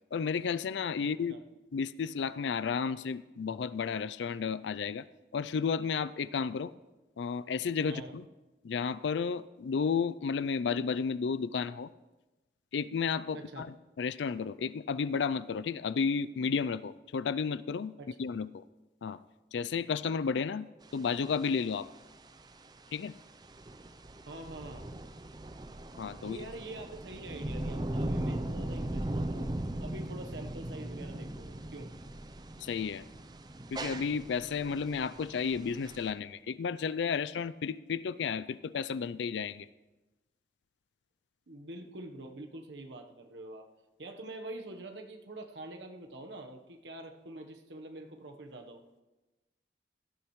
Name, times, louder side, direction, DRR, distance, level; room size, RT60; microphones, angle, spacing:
voice 1, 0.1-1.3 1.7-5.0 5.3-6.7 7.2-8.2 8.6-11.9 12.7-17.9 18.2-18.6 19.0-19.2 19.5-20.7 20.9-21.9 22.9-23.1 26.0-26.5 32.6-33.0 33.7-39.7, left 6 dB, 90° left, 17 dB, 0.4 m, -32 dB
voice 2, 1.0-1.4 7.9-8.1 13.3-13.6 18.0-18.1 24.3-24.9 26.2-29.5 29.8-31.9 41.5-43.7 44.0-48.8, right 2 dB, 90° right, 3 dB, 1.1 m, -45 dB
sound 1, 20.8-36.1, right 1 dB, 25° right, 0.5 m, -39 dB
17.0 x 12.0 x 3.2 m, 1.1 s
head